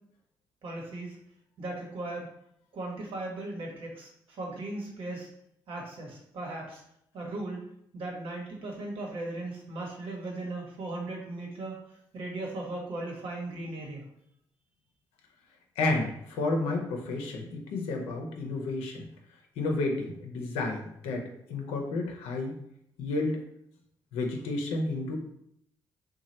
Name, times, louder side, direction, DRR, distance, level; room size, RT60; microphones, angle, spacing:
voice 1, 0.6-1.2 1.6-2.3 2.7-5.3 5.7-6.8 7.1-7.6 7.9-11.8 12.1-14.1, right 2 dB, 65° right, -1 dB, 1.1 m, -37 dB
voice 2, 15.8-19.1 19.6-22.5 23.0-23.4 24.1-25.2, left 2 dB, 80° left, 2 dB, 0.7 m, -31 dB
3.1 x 2.3 x 4.0 m, 0.74 s
hypercardioid pair, 50°, 10 cm